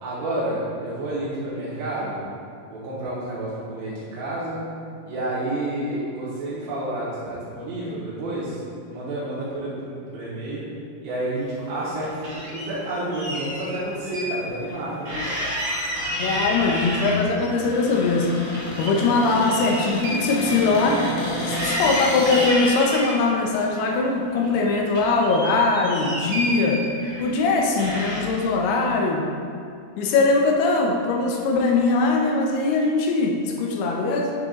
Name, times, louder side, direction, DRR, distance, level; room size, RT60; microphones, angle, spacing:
voice 1, 0.0-2.2 2.7-4.6 5.1-8.6 8.9-10.6 11.0-15.2, right 1 dB, 75° right, -11 dB, 3.5 m, -29 dB
sound 1, 11.6-12.7 13.1-14.3 14.6-14.8 15.0-17.5 17.8-21.2 21.5-23.2 23.7-24.6 24.9-27.4 27.8-28.4, equal, 40° right, 1.6 m, -30 dB
Cupboard open or close, 15.8-22.5, left 1 dB, 60° left, 2.0 m, -31 dB
voice 2, 16.2-18.3 18.8-21.0 21.5-26.8 27.2-29.3 30.0-34.4, left 3 dB, 75° left, 1 dB, 2.6 m, -21 dB
9.8 x 6.9 x 2.5 m, 2.4 s
omnidirectional pair, 5.0 m